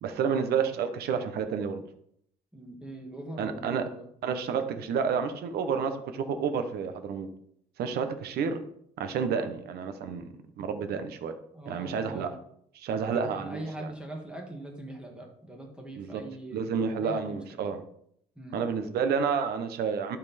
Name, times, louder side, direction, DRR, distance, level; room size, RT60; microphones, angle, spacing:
voice 1, 0.0-1.8 3.4-3.9 4.2-7.3 7.8-8.6 9.0-10.3 10.6-11.3 11.6-12.3 12.7-13.9 15.9-16.2 16.5-17.8 18.5-20.2, right 6 dB, 70° right, 9 dB, 1.1 m, -30 dB
voice 2, 2.5-4.0 7.9-8.1 11.5-12.4 13.0-17.6 18.4-18.6, right 1 dB, 5° right, 1 dB, 1.8 m, -42 dB
12.0 x 4.5 x 4.3 m, 0.69 s
cardioid pair, 110°, 17 cm